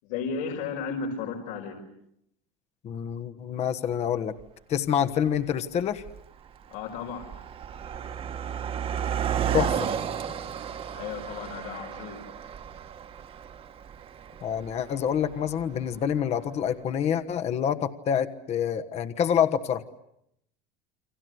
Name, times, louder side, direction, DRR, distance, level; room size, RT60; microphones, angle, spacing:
voice 1, 0.0-1.8 6.7-7.3 10.9-12.2, left 5 dB, 75° left, 1 dB, 5.4 m, -34 dB
voice 2, 2.8-4.3 4.7-6.0 9.5-9.9 14.4-19.8, left 9 dB, 35° left, 9 dB, 1.4 m, -27 dB
Car passing by, 4.4-4.5 5.3-5.5 5.8-16.2, right 8 dB, 30° right, 1.5 m, -33 dB
29.5 x 25.5 x 8.0 m, 0.79 s
cardioid pair, 150°, 20 cm